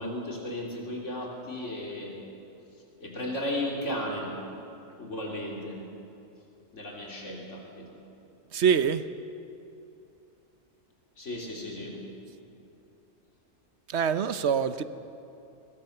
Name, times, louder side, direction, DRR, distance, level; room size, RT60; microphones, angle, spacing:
voice 1, 0.0-2.2 3.0-4.4 4.9-5.8 6.7-8.0 11.2-12.1, left 1 dB, 80° left, -2 dB, 3.8 m, -35 dB
voice 2, 8.5-9.1 13.9-14.8, right 7 dB, 65° right, 12 dB, 1.1 m, -25 dB
21.5 x 21.5 x 6.7 m, 2.8 s
omnidirectional pair, 1.2 m